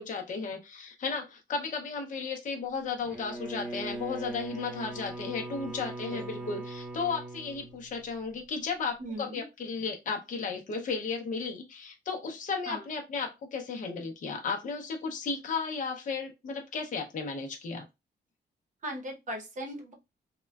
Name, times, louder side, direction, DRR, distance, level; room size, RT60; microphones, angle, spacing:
voice 1, 0.0-17.8, left 5 dB, 45° left, 3 dB, 0.6 m, -34 dB
Bowed string instrument, 3.0-8.4, right 1 dB, 5° right, 0.8 m, -40 dB
voice 2, 6.1-6.5 9.0-9.4 12.7-12.9 18.8-19.9, equal, 45° right, 3 dB, 0.8 m, -38 dB
3.6 x 2.1 x 2.2 m, 0.23 s
wide cardioid pair, 165°, 18 cm